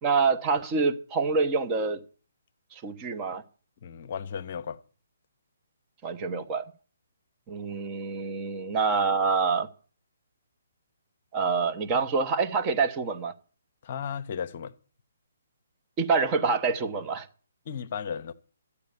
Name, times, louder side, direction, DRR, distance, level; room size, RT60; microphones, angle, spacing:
voice 1, 0.0-2.0 2.7-3.4 6.0-6.6 7.5-9.7 11.3-13.3 16.0-17.3, right 4 dB, 20° right, 1.1 m, -26 dB
voice 2, 3.8-4.8 13.8-14.7 17.7-18.3, left 7 dB, 45° left, 0.7 m, -34 dB
13.0 x 8.5 x 6.9 m
figure-of-eight pair, 135°, 0 cm